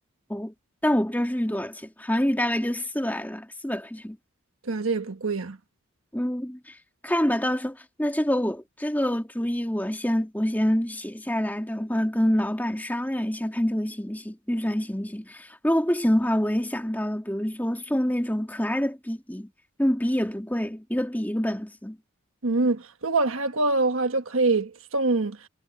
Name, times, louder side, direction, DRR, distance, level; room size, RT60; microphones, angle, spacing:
voice 1, 0.8-4.2 6.1-6.7 7.0-19.5 19.8-22.0, equal, 10° left, 2.6 m, -26 dB
voice 2, 4.6-5.6 22.4-25.4, right 3 dB, 75° right, 1.4 m, -24 dB
head